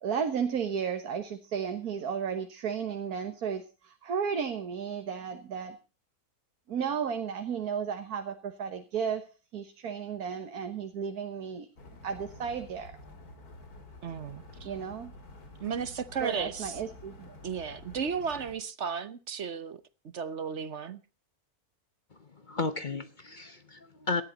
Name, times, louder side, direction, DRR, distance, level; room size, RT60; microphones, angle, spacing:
voice 1, 0.0-5.8 6.7-9.2 9.5-11.7 12.0-13.0 14.6-15.1 16.2-17.3, right 7 dB, 80° right, 1.8 m, -33 dB
sound 1, 11.8-18.5, left 2 dB, 80° left, 3.3 m, -49 dB
voice 2, 14.0-14.7 15.6-16.8 17.4-21.0, right 6 dB, 55° right, 1.1 m, -34 dB
voice 3, 22.1-24.2, left 3 dB, 35° left, 1.0 m, -34 dB
18.5 x 13.5 x 4.0 m
omnidirectional pair, 1.6 m